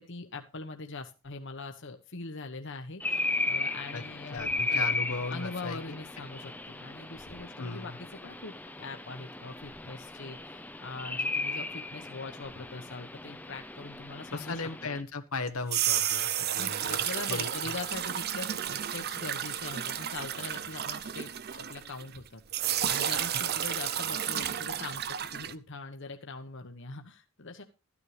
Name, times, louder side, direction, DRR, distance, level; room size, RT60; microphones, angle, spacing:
voice 1, 0.0-4.9 5.3-14.6 16.6-27.6, left 3 dB, 55° left, 5 dB, 1.2 m, -42 dB
sound 1, 3.0-15.0, left 2 dB, 10° left, 0.7 m, -36 dB
voice 2, 4.3-5.8 7.6-8.0 14.3-17.5, left 3 dB, 75° left, 7 dB, 1.3 m, -36 dB
sound 2, 15.5-22.2 22.5-25.5, right 10 dB, 45° right, 0.6 m, -32 dB
13.5 x 9.7 x 3.3 m, 0.32 s
head